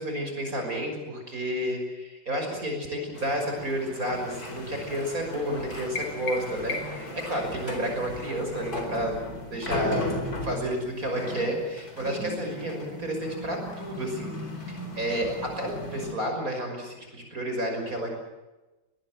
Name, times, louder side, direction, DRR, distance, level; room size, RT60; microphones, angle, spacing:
voice 1, 0.0-9.2 9.5-10.1 10.4-14.4 14.7-18.1, equal, 45° right, 3 dB, 6.3 m, -31 dB
sound 1, 3.1-16.1, left 2 dB, 45° left, 4.8 m, -37 dB
sound 2, 6.0-7.2, left 3 dB, 85° left, 4.5 m, -35 dB
21.0 x 20.5 x 9.2 m, 1.1 s
omnidirectional pair, 2.1 m